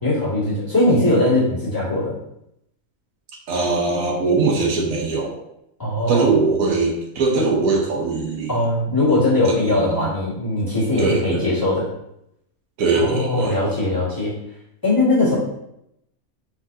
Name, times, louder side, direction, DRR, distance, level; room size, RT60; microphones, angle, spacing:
voice 1, 0.0-2.1 5.8-6.3 8.5-11.9 12.9-14.3 14.8-15.3, left 2 dB, 15° left, -9 dB, 1.7 m, -20 dB
voice 2, 3.5-5.4 6.1-8.6 9.5-10.1 11.0-11.5 12.8-13.5, right 4 dB, 70° right, 1 dB, 1.3 m, -21 dB
5.0 x 3.9 x 2.6 m, 0.80 s
omnidirectional pair, 1.5 m